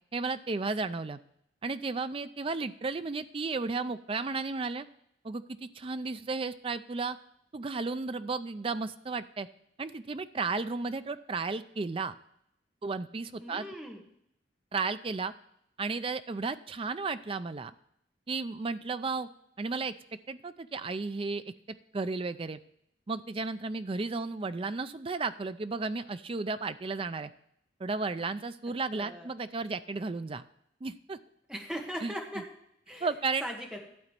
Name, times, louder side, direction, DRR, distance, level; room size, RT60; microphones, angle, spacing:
voice 1, 0.1-1.2 1.6-4.9 5.2-7.2 7.5-9.5 9.8-12.2 12.8-13.7 14.7-15.3 15.8-17.7 18.3-19.3 19.6-19.9 20.3-21.5 21.9-22.6 23.1-27.3 27.8-30.4 30.8-31.2 32.0-32.1 33.0-33.4, right 4 dB, 30° right, 12 dB, 0.4 m, -33 dB
voice 2, 13.4-14.0 29.0-29.3 31.5-32.4 32.9-33.1 33.4-33.9, equal, 5° right, 0 dB, 1.4 m, -39 dB
12.0 x 4.0 x 7.5 m, 0.73 s
head